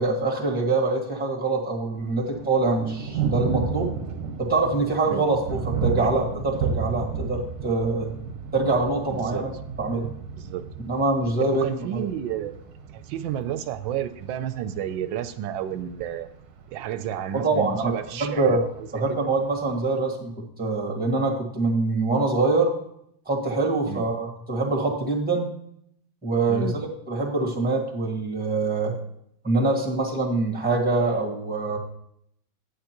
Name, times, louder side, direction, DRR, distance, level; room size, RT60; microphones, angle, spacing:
voice 1, 0.0-3.9 4.4-8.1 8.5-9.5 9.8-10.1 10.9-11.6 11.9-12.0 17.4-17.9 18.2-18.6 18.9-20.3 20.6-22.7 23.2-25.5 26.2-28.9 29.4-31.8, right 3 dB, 5° right, -1 dB, 1.4 m, -24 dB
Thunder, 1.9-19.9, right 6 dB, 60° right, 1.2 m, -33 dB
voice 2, 9.1-9.5 10.3-10.7 11.4-12.7 12.9-16.3 16.7-19.2 23.9-24.0 26.5-26.8, right 10 dB, 90° right, 11 dB, 1.3 m, -31 dB
9.6 x 8.5 x 2.9 m, 0.71 s
omnidirectional pair, 2.1 m